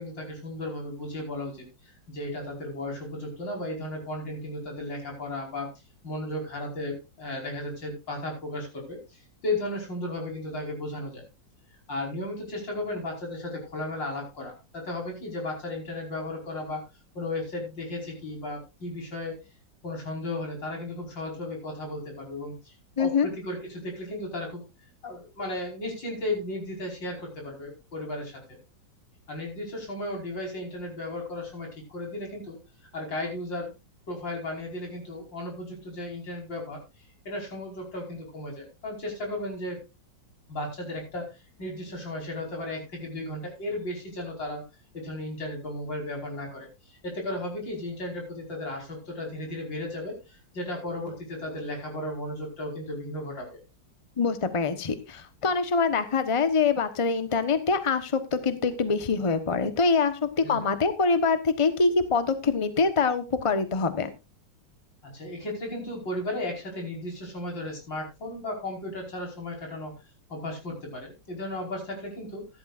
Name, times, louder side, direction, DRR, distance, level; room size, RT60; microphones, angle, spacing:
voice 1, 0.0-5.7 6.0-11.3 11.9-16.8 17.2-19.4 19.8-24.6 25.0-28.4 29.3-32.6 32.9-33.7 34.1-36.8 37.3-39.8 40.5-44.7 44.9-53.6 60.4-60.7 65.0-70.0 70.3-72.5, left 1 dB, 75° left, 0 dB, 5.8 m, -35 dB
voice 2, 23.0-23.3 54.2-64.1, left 4 dB, 20° left, 10 dB, 1.0 m, -24 dB
15.5 x 12.0 x 2.6 m, 0.27 s
omnidirectional pair, 2.0 m